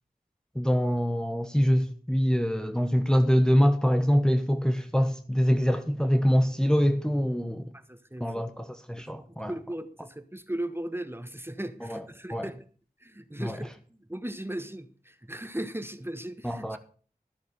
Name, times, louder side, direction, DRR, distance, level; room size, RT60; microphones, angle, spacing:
voice 1, 0.5-7.6 8.2-9.5 11.9-12.0 12.3-12.5 13.4-13.6 16.4-16.8, equal, 5° left, 1.1 m, -24 dB
voice 2, 7.7-8.4 9.0-9.1 9.4-12.6 13.0-13.7 14.0-16.8, right 1 dB, 15° right, 1.2 m, -37 dB
13.5 x 6.6 x 6.5 m
wide cardioid pair, 40°, 16 cm